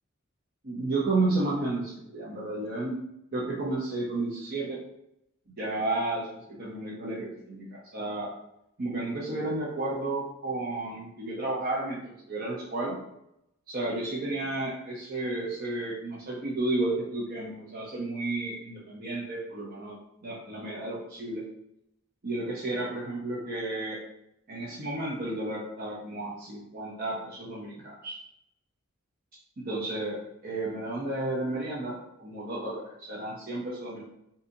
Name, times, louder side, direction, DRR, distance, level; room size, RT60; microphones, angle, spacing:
voice 1, 0.6-3.0 3.3-4.8 5.6-8.3 8.8-13.0 13.7-20.0 20.2-21.4 22.2-24.0 24.5-28.2 29.6-34.0, right 2 dB, 45° right, -5 dB, 0.7 m, -32 dB
3.8 x 2.7 x 2.6 m, 0.81 s
head